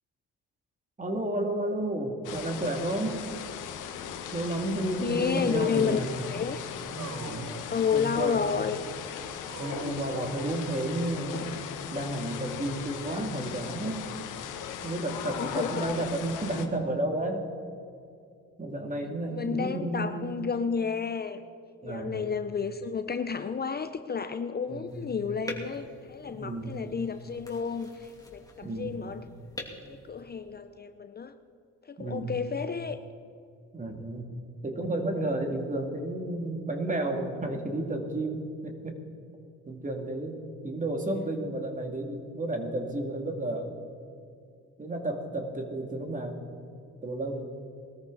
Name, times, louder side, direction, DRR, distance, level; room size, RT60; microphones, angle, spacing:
voice 1, 1.0-3.3 4.3-6.1 6.9-7.5 7.9-8.4 9.4-11.5 11.9-14.1 14.8-17.5 18.6-20.2 21.8-22.3 24.7-25.2 26.3-26.9 28.6-29.1 32.0-32.4 33.7-34.3 34.6-39.0 39.7-40.4 40.6-43.7 44.8-46.4 47.0-47.4, right 1 dB, 25° right, 3 dB, 2.6 m, -32 dB
sound 1, 2.2-16.7, left 8 dB, 90° left, 1.3 m, -38 dB
voice 2, 5.0-6.6 7.7-8.8 15.4-15.9 19.3-21.4 21.8-29.2 29.9-31.3 31.9-33.0, left 6 dB, 35° left, 9 dB, 0.7 m, -31 dB
Dog, 7.0-8.4 9.5-11.1, right 7 dB, 65° right, 0.9 m, -43 dB
sound 2, 24.9-30.7, left 1 dB, 10° left, 2.8 m, -45 dB
20.5 x 13.5 x 4.1 m, 2.4 s
cardioid pair, 90°, 30 cm